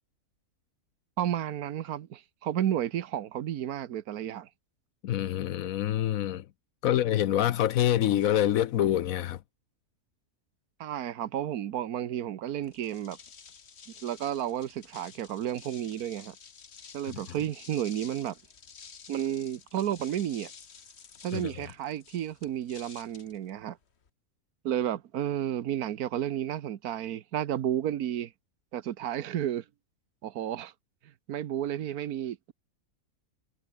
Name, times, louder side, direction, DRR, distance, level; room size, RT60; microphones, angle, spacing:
voice 1, 1.2-4.5 10.8-13.2 14.0-16.3 16.9-18.4 19.1-20.5 21.2-23.8 24.6-28.3 28.7-29.6 30.2-30.7 31.3-32.5, right 11 dB, 75° right, 1.4 m, -32 dB
voice 2, 5.0-6.4 6.8-9.4 21.3-21.5, left 12 dB, 70° left, 1.1 m, -26 dB
sound 1, 12.6-24.1, left 6 dB, 45° left, 1.5 m, -51 dB
omnidirectional pair, 1.6 m